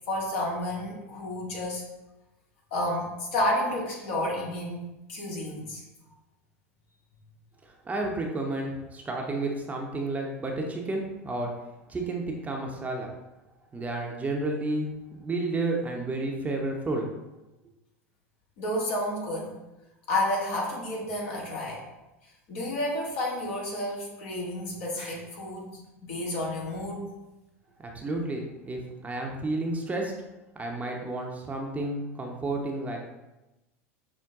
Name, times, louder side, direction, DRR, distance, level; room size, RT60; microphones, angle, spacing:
voice 1, 0.1-1.8 2.7-5.8 18.6-19.5 20.1-21.8 22.5-27.1, left 1 dB, 65° left, -3 dB, 1.5 m, -31 dB
voice 2, 7.6-11.5 11.9-13.1 13.7-14.9 15.2-17.1 27.8-30.1 30.5-33.0, right 2 dB, 20° right, 1 dB, 0.7 m, -31 dB
5.9 x 2.2 x 3.5 m, 1.0 s
hypercardioid pair, 90°, 8 cm